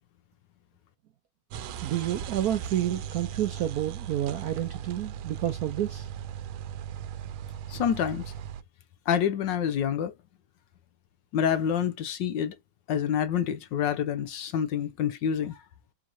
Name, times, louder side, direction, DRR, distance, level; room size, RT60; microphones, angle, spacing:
sound 1, 1.5-8.6, right 9 dB, 90° right, 1.4 m, -38 dB
voice 1, 1.8-6.1, right 11 dB, 70° right, 0.9 m, -29 dB
voice 2, 7.7-8.3 9.1-10.1 11.3-12.5 12.9-15.6, left 8 dB, 70° left, 1.3 m, -27 dB
4.5 x 3.6 x 2.6 m
omnidirectional pair, 2.2 m